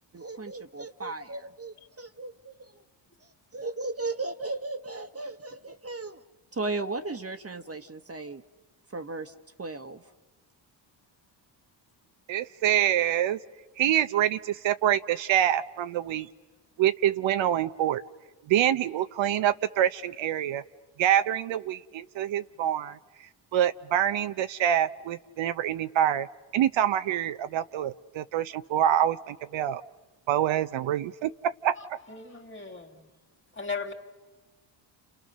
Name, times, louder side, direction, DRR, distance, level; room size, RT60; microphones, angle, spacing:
voice 1, 0.1-2.7 3.2-6.2 6.5-8.4 8.9-10.0, right 3 dB, 30° right, 7 dB, 1.4 m, -36 dB
voice 2, 12.3-13.4 13.8-16.3 16.8-18.0 18.5-20.6 21.0-23.0 23.5-26.3 26.5-29.8 30.3-32.0, right 11 dB, 65° right, 11 dB, 0.9 m, -26 dB
voice 3, 31.8-33.0 33.6-33.9, left 4 dB, 25° left, 7 dB, 3.0 m, -37 dB
29.5 x 28.5 x 6.7 m, 1.2 s
supercardioid pair, 60°, 49 cm